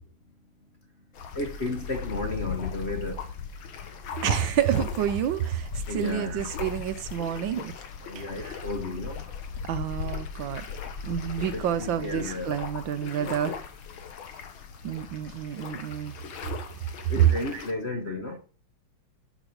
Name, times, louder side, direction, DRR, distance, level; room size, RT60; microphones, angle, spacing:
sound 1, 1.1-17.7, left 6 dB, 75° left, 2.0 m, -38 dB
voice 1, 1.3-3.3 5.9-6.5 8.0-9.3 11.5-12.6 13.0-13.4 17.1-18.4, left 2 dB, 40° left, 1.1 m, -33 dB
voice 2, 4.2-7.7 8.1-8.5 9.7-10.7 11.0-13.6 14.8-16.1 17.2-17.6, right 10 dB, 70° right, 1.4 m, -28 dB
11.5 x 6.0 x 5.2 m
omnidirectional pair, 2.3 m